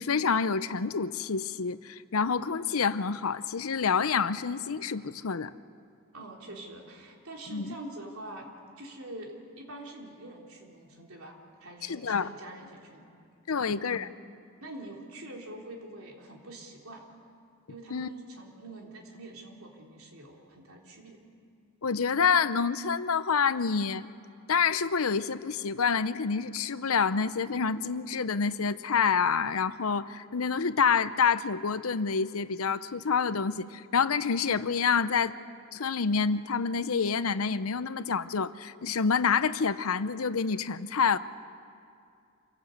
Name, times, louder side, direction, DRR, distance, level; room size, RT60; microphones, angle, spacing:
voice 1, 0.0-5.5 7.5-7.8 11.8-12.3 13.5-14.1 17.9-18.1 21.8-24.1 24.5-35.4 35.7-41.2, left 5 dB, 90° left, 14 dB, 0.7 m, -27 dB
voice 2, 6.1-8.5 8.8-13.1 13.6-13.9 14.6-17.1 17.7-21.2, right 1 dB, 80° right, 0 dB, 3.6 m, -45 dB
27.0 x 17.0 x 8.0 m, 2.4 s
head